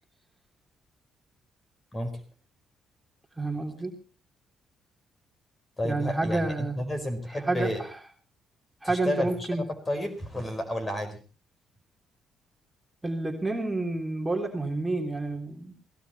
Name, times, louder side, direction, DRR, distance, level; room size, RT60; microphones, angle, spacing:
voice 1, 3.4-4.0 5.8-6.8 7.3-8.0 8.8-9.7 13.0-15.7, right 2 dB, 10° right, 2 dB, 3.5 m, -29 dB
voice 2, 5.8-7.9 8.8-11.2, left 1 dB, 20° left, 7 dB, 4.4 m, -31 dB
18.0 x 16.5 x 4.3 m, 0.37 s
cardioid pair, 90°, 0 cm